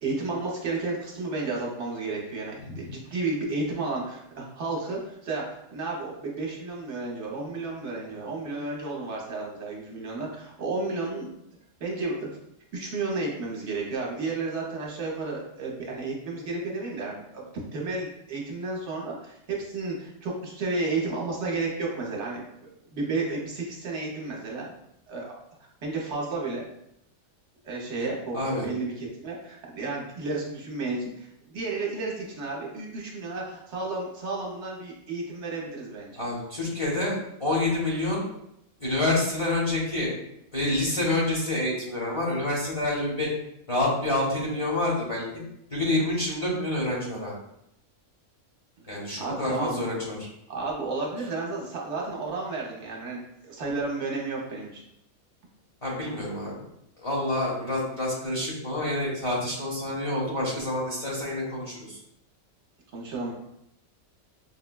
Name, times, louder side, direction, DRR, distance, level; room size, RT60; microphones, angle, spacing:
voice 1, 0.0-11.3 11.8-12.3 12.7-22.5 22.9-24.7 25.1-25.4 25.8-26.6 27.6-36.2 48.8-49.8 50.5-54.8 62.9-63.3, right 3 dB, 55° right, -2 dB, 1.0 m, -32 dB
voice 2, 28.3-28.6 36.2-38.3 38.8-40.1 40.5-43.3 43.7-45.2 45.7-47.4 48.9-50.3 55.8-56.6 57.0-62.0, left 1 dB, 30° left, -6 dB, 0.7 m, -27 dB
5.3 x 2.1 x 2.2 m, 0.78 s
omnidirectional pair, 1.5 m